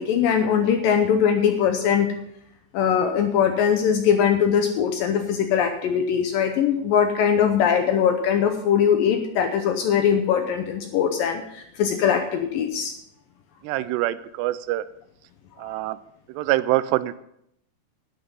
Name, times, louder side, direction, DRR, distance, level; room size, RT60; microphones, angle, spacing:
voice 1, 0.0-2.1 2.7-12.9, left 8 dB, 75° left, 6 dB, 2.1 m, -21 dB
voice 2, 13.6-14.9 15.6-16.0 16.3-17.1, right 16 dB, 85° right, 16 dB, 2.7 m, -25 dB
11.5 x 9.8 x 5.4 m, 0.74 s
omnidirectional pair, 4.8 m